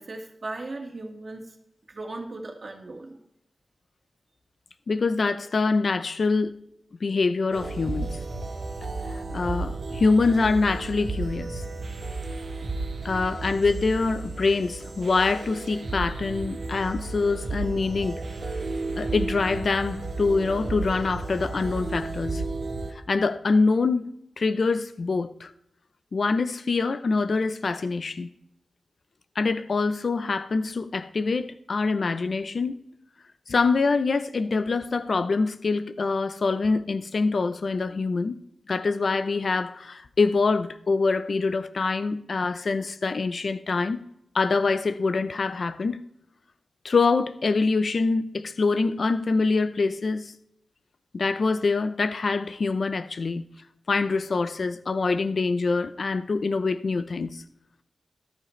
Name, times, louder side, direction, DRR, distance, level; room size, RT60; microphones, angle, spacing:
voice 1, 0.0-1.5 1.9-3.2, right 2 dB, 50° right, 2.0 m, -37 dB
voice 2, 4.9-6.6 7.0-8.3 9.1-11.6 13.0-18.2 18.9-22.4 23.1-24.1 24.4-25.5 26.1-28.3 29.4-32.8 33.5-38.4 38.7-44.0 44.3-46.0 46.8-50.3 51.1-53.4 53.9-57.4, left 4 dB, 60° left, 0.7 m, -25 dB
sound 1, 7.5-22.9, right 3 dB, 65° right, 1.7 m, -33 dB
14.0 x 13.0 x 3.2 m
wide cardioid pair, 100°, 0 cm